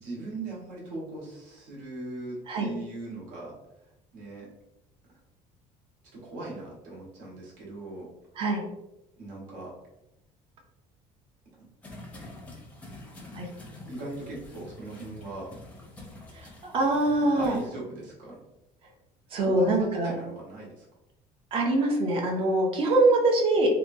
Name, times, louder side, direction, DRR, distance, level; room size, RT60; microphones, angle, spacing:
voice 1, 0.0-3.6 4.1-4.5 6.1-8.1 9.2-9.7 11.5-11.6 13.8-15.5 17.2-18.4 19.4-20.8, right 2 dB, 75° right, -4 dB, 1.2 m, -39 dB
sound 1, 11.8-17.7, left 2 dB, 10° left, 0.6 m, -46 dB
voice 2, 16.3-17.6 19.3-20.1 21.5-23.7, right 2 dB, 40° right, 1 dB, 0.6 m, -24 dB
2.8 x 2.2 x 2.6 m, 0.92 s
cardioid pair, 150°, 14 cm